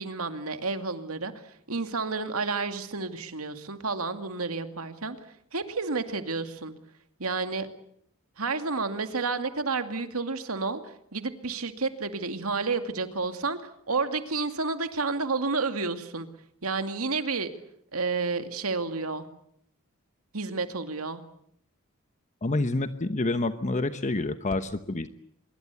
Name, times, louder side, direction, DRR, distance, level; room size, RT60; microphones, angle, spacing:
voice 1, 0.0-5.2 5.5-6.7 7.2-7.7 8.4-13.6 13.9-16.3 16.6-17.5 17.9-19.3 20.3-21.2, right 4 dB, 75° right, 8 dB, 2.4 m, -30 dB
voice 2, 22.4-25.1, left 2 dB, 35° left, 10 dB, 1.0 m, -28 dB
25.0 x 23.0 x 8.3 m, 0.71 s
head